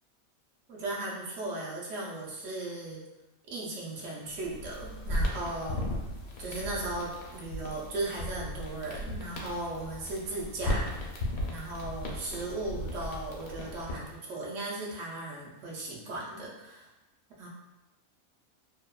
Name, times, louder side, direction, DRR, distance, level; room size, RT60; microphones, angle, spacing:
voice 1, 0.7-3.0 3.5-5.8 6.4-11.1 11.5-16.9 17.4-17.5, right 2 dB, 70° right, -3 dB, 0.9 m, -37 dB
sound 1, 4.4-14.2, left 1 dB, 85° left, 1.0 m, -36 dB
2.8 x 2.1 x 2.3 m, 1.0 s
omnidirectional pair, 1.4 m